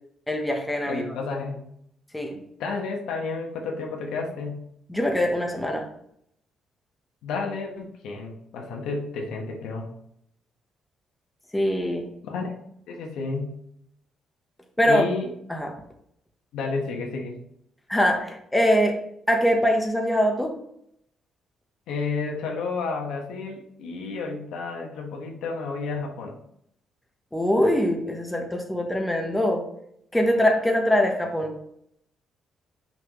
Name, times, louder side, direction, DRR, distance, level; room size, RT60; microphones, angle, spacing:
voice 1, 0.3-1.0 2.1-2.4 4.9-5.9 11.5-12.1 14.8-15.0 15.5-15.7 17.9-19.0 19.3-20.5 27.3-29.6 30.1-31.5, equal, 5° left, 2 dB, 1.2 m, -23 dB
voice 2, 0.9-1.6 2.6-4.6 7.2-9.9 12.2-12.5 12.9-13.5 14.8-15.3 16.5-17.4 21.9-26.4, left 4 dB, 90° left, 1 dB, 1.4 m, -31 dB
5.9 x 5.8 x 3.1 m, 0.72 s
cardioid pair, 90°, 0 cm